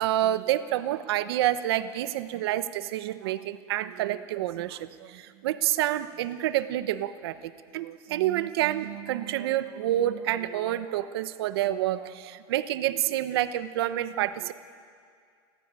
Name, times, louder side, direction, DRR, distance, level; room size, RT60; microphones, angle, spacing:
voice 1, 0.0-14.5, right 13 dB, 85° right, 12 dB, 1.1 m, -28 dB
28.0 x 14.5 x 9.0 m, 2.2 s
supercardioid pair, 145°, 13 cm